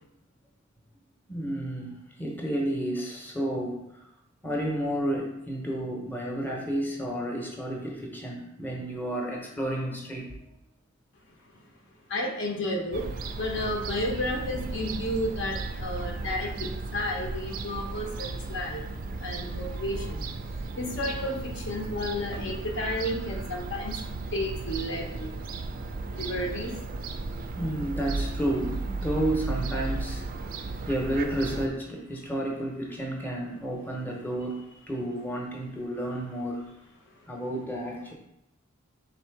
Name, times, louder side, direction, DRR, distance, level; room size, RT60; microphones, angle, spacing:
voice 1, 1.3-4.0 4.4-10.4 27.6-30.2 30.9-34.6 34.9-36.6 37.3-38.1, right 1 dB, 10° left, -1 dB, 0.7 m, -31 dB
voice 2, 12.1-13.1 13.4-18.8 19.2-20.2 20.8-23.9 24.3-25.3 26.1-26.7, left 1 dB, 65° left, 1 dB, 0.7 m, -32 dB
Fowl / Gull seagull, 12.9-31.7, right 3 dB, 45° right, 0.3 m, -35 dB
3.8 x 2.7 x 4.5 m, 0.86 s
head